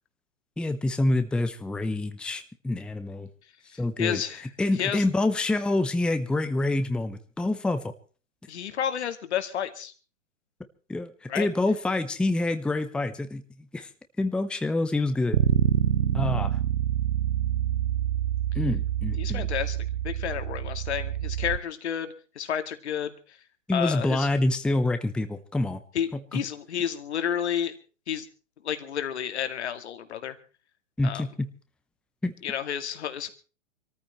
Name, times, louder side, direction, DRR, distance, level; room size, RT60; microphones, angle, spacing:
voice 1, 0.6-3.3 3.8-7.9 10.9-13.9 14.2-15.4 16.1-16.6 18.5-19.5 23.7-25.8 26.1-26.4 31.0-31.5 32.2-32.3, left 2 dB, 5° left, 9 dB, 0.8 m, -27 dB
voice 2, 3.7-4.5 4.8-5.0 8.5-9.9 11.3-11.5 19.2-19.8 20.0-23.1 23.7-24.3 25.9-27.7 28.1-28.3 28.6-30.4 31.0-31.2 32.4-33.3, left 9 dB, 60° left, 8 dB, 2.2 m, -31 dB
Bass guitar, 15.3-21.6, right 10 dB, 65° right, 0.8 m, -26 dB
26.5 x 14.0 x 3.2 m, 0.36 s
figure-of-eight pair, 110°, 38 cm